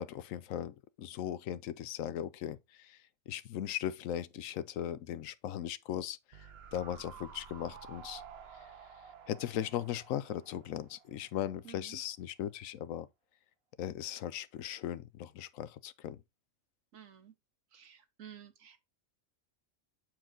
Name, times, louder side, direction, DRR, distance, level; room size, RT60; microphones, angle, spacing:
voice 1, 0.0-3.0 3.3-6.5 6.7-8.2 9.3-13.1 13.8-16.2, left 10 dB, 85° left, 1.0 m, -38 dB
sound 1, 6.3-11.6 11.8-11.9, right 6 dB, 55° right, 0.9 m, -52 dB
voice 2, 11.6-12.0 16.9-17.3 17.7-18.8, right 9 dB, 80° right, 1.4 m, -52 dB
7.4 x 4.6 x 3.7 m
omnidirectional pair, 1.4 m